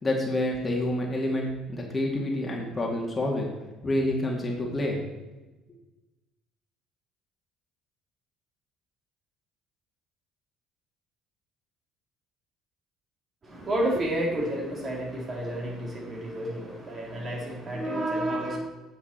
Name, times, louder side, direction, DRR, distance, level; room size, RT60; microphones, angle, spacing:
voice 1, 0.0-3.5 3.8-5.0, left 1 dB, 25° left, 0 dB, 2.1 m, -28 dB
voice 2, 13.4-18.6, right 1 dB, 35° right, -2 dB, 3.2 m, -30 dB
8.9 x 7.1 x 4.4 m, 1.1 s
supercardioid pair, 85°, 0 cm